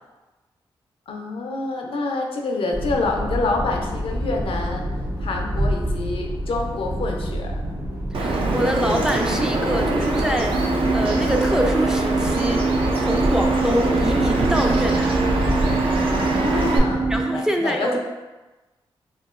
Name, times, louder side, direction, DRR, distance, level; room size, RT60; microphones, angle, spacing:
voice 1, 1.1-4.8 5.2-7.5 16.1-18.0, left 3 dB, 70° left, 2 dB, 0.4 m, -27 dB
sound 1, 2.7-17.2, equal, 45° right, 1.5 m, -28 dB
voice 2, 8.1-12.6 13.0-15.2 17.1-18.0, equal, 5° right, 2 dB, 0.3 m, -25 dB
Bird vocalization bird call bird song, 8.1-16.8, right 2 dB, 65° right, 0.5 m, -24 dB
sound 2, 10.5-17.4, right 4 dB, 90° right, 0.9 m, -25 dB
2.8 x 2.8 x 2.4 m, 1.1 s
cardioid pair, 65°, 10 cm